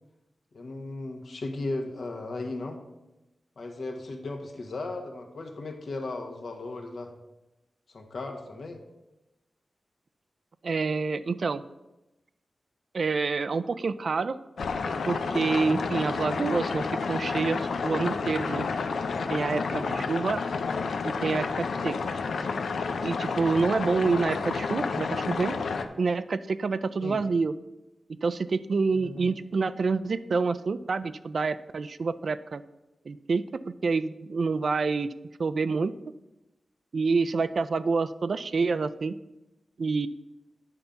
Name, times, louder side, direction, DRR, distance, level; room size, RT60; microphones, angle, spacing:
voice 1, 0.5-2.8 3.6-7.1 7.9-8.8 19.7-20.2 27.0-27.2 28.9-29.3, left 2 dB, 60° left, 3 dB, 1.3 m, -36 dB
voice 2, 10.6-11.6 12.9-14.4 15.1-18.7 19.3-20.4 21.0-22.2 23.0-25.6 26.0-27.5 28.2-32.6 33.1-35.1 35.4-36.0 36.9-39.2 39.8-40.1, right 4 dB, 55° right, 13 dB, 0.3 m, -27 dB
sound 1, 14.6-25.9, left 4 dB, 90° left, 0.6 m, -30 dB
9.2 x 3.9 x 7.0 m, 0.98 s
wide cardioid pair, 135°, 0 cm